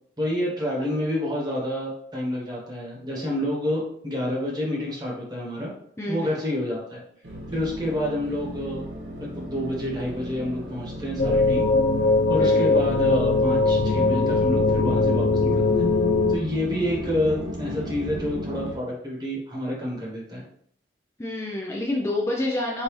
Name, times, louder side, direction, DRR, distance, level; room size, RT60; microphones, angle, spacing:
voice 1, 0.2-5.7 6.1-7.0 7.5-8.8 9.2-11.7 12.3-15.9 16.3-20.4, left 1 dB, 20° right, -3 dB, 1.2 m, -28 dB
voice 2, 6.0-6.3 12.4-12.8 21.2-22.8, left 1 dB, 15° left, -2 dB, 0.4 m, -28 dB
sound 1, 7.2-18.8, equal, 75° right, 0.9 m, -35 dB
sound 2, 11.2-16.4, left 3 dB, 75° left, 0.4 m, -21 dB
5.3 x 2.7 x 3.1 m, 0.67 s
head